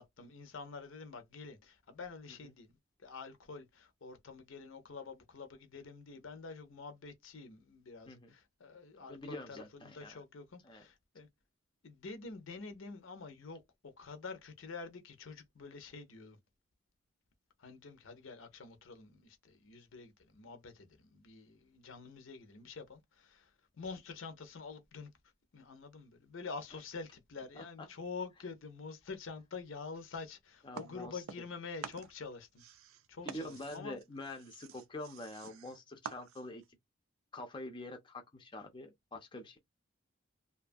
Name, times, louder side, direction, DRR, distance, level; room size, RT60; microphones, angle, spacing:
voice 1, 0.0-2.7 3.0-11.3 11.8-16.4 17.6-25.1 25.5-32.6 33.1-34.0, left 4 dB, 70° left, 0.6 m, -47 dB
voice 2, 9.0-10.2 10.6-10.9 27.6-27.9 30.6-31.2 33.2-36.6 37.3-39.6, left 1 dB, 20° left, 0.5 m, -46 dB
sound 1, 30.7-31.6 31.8-36.7, right 7 dB, 80° right, 0.4 m, -49 dB
2.6 x 2.3 x 2.5 m
head